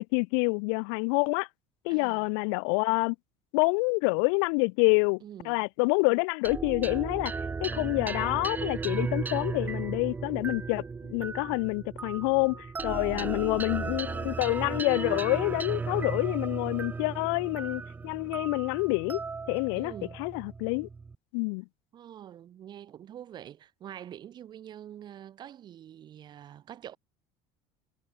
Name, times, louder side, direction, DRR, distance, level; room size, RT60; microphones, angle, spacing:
voice 1, 0.0-1.5 1.8-3.2 3.5-7.3 7.6-19.2 19.5-19.9 20.2-20.9 21.3-21.6, left 38 dB, 80° left, 0.4 m, -27 dB
voice 2, 1.9-2.3 5.2-5.6 13.0-13.4 19.7-20.2 21.9-27.0, right 10 dB, 30° right, 2.4 m, -45 dB
sound 1, 6.4-21.1, right 4 dB, 15° right, 0.8 m, -35 dB
cardioid pair, 165°, 14 cm